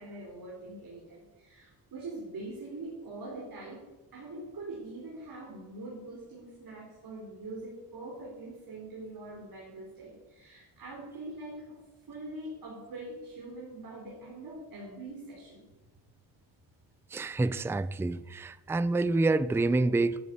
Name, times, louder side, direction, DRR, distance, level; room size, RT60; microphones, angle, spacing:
voice 1, 0.0-11.8 12.1-15.7, right 2 dB, 45° right, -3 dB, 4.6 m, -43 dB
voice 2, 17.1-20.2, right 2 dB, 5° right, 16 dB, 0.4 m, -27 dB
13.5 x 9.0 x 8.3 m, 1.2 s
cardioid pair, 95°, 47 cm